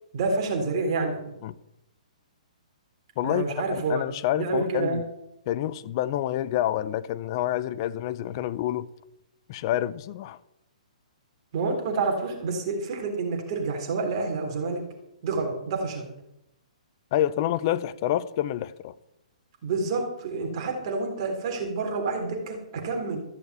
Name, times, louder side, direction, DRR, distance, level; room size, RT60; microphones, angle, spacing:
voice 1, 0.1-1.2 3.2-4.0 4.4-5.0 11.5-14.8 15.2-16.1 19.6-23.2, right 3 dB, 40° right, 3.6 m, -28 dB
voice 2, 3.2-5.0 5.5-8.9 9.5-10.4 17.1-18.9, left 12 dB, 35° left, 0.6 m, -28 dB
14.5 x 6.8 x 7.9 m
hypercardioid pair, 160°, 4 cm